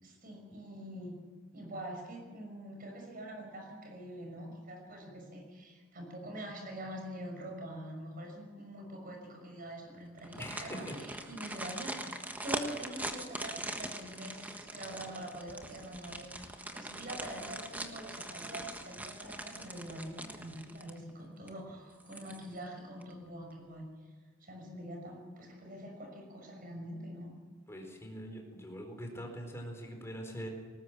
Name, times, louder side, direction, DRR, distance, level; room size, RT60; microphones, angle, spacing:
voice 1, 0.0-1.2 1.5-12.1 12.4-23.9 24.4-27.3, right 1 dB, 45° right, 2 dB, 6.0 m, -45 dB
sound 1, 10.2-21.1 21.5-21.6 22.0-22.7 23.0-23.1, right 1 dB, 10° right, 1.4 m, -42 dB
voice 2, 10.4-11.0 27.7-30.5, equal, 15° left, 2 dB, 4.3 m, -43 dB
19.5 x 19.0 x 7.4 m, 1.5 s
head